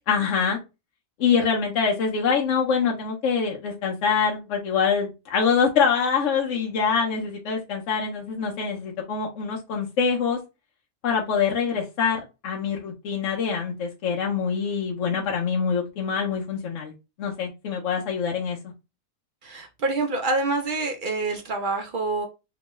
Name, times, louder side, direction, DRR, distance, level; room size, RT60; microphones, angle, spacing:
voice 1, 0.1-0.6 1.2-10.4 11.0-16.9 17.2-18.6, left 6 dB, 70° left, 1.0 m, -25 dB
voice 2, 19.4-22.3, right 3 dB, 70° right, 0.4 m, -26 dB
3.0 x 2.2 x 2.9 m
omnidirectional pair, 1.4 m